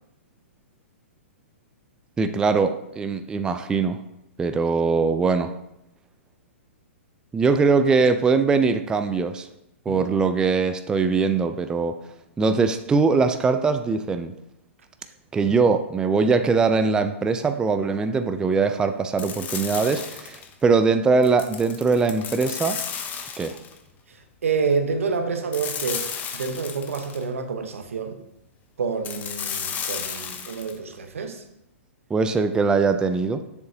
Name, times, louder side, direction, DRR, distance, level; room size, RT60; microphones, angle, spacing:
voice 1, 2.2-4.0 4.4-5.5 7.3-9.5 9.9-12.0 12.4-14.3 15.3-22.8 23.4-23.5 32.1-33.4, right 4 dB, 10° right, 0.3 m, -21 dB
sound 1, 19.2-20.5 21.2-23.8 25.5-27.2 29.0-30.7, left 7 dB, 25° left, 0.8 m, -33 dB
voice 2, 24.1-28.2 28.8-31.4, right 5 dB, 75° right, 0.8 m, -28 dB
7.0 x 6.5 x 2.7 m
hypercardioid pair, 120°, 7 cm